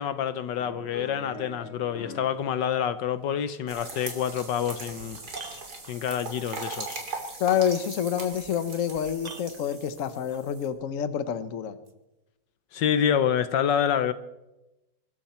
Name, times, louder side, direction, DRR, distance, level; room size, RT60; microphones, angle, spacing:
voice 1, 0.0-5.2 5.9-7.0 12.7-14.1, left 8 dB, 75° left, 1.4 m, -27 dB
sound 1, 0.6-2.4 2.7-4.3 4.8-5.1, left 3 dB, 35° left, 1.7 m, -43 dB
sound 2, 3.7-10.7, right 3 dB, 55° right, 3.5 m, -40 dB
sound 3, 4.9-6.4 8.4-8.5 9.2-10.5 11.8-11.9, right 4 dB, 30° right, 0.8 m, -46 dB
voice 2, 7.4-11.8, left 9 dB, 50° left, 1.2 m, -27 dB
23.0 x 14.0 x 4.4 m
omnidirectional pair, 2.0 m